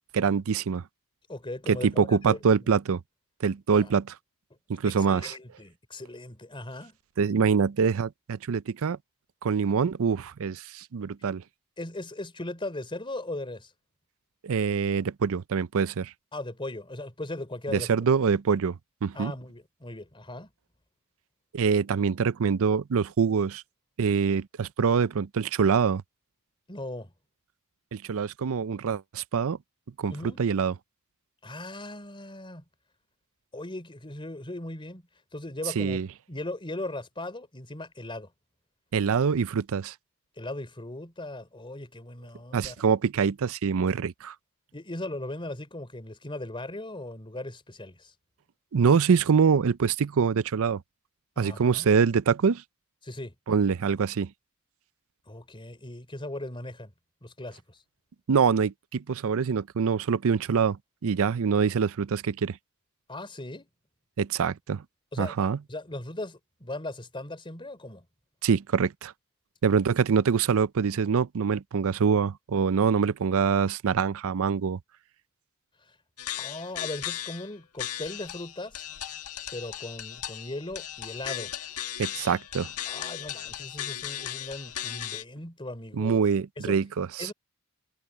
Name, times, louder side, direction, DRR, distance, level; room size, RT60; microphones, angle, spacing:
voice 1, 0.1-0.8 1.7-3.0 3.4-4.1 4.7-5.3 7.2-9.0 9.4-11.4 14.4-16.1 17.7-19.3 21.5-23.6 24.0-26.0 27.9-29.6 30.0-30.1 30.4-30.7 35.8-36.1 38.9-39.9 42.5-44.3 48.7-50.8 51.4-52.6 53.5-54.3 58.3-60.8 61.0-62.6 64.2-64.8 65.2-65.6 68.4-69.1 69.6-74.8 82.0-82.7 85.9-87.3, right 6 dB, 65° right, 0.5 m, -25 dB
voice 2, 1.3-2.7 3.7-3.9 4.8-7.0 11.8-13.7 16.3-17.9 19.1-20.5 26.7-27.1 30.1-30.4 31.4-32.6 33.5-35.0 35.3-38.3 40.4-42.8 44.7-48.1 51.4-51.9 53.0-53.3 55.3-56.9 57.2-57.8 63.1-63.7 65.1-65.3 65.7-68.1 76.3-78.9 79.5-81.5 82.9-86.2 86.6-86.8 87.2-87.3, left 2 dB, 25° left, 3.8 m, -38 dB
sound 1, 76.2-77.5 77.8-85.2, left 11 dB, 85° left, 1.6 m, -37 dB
head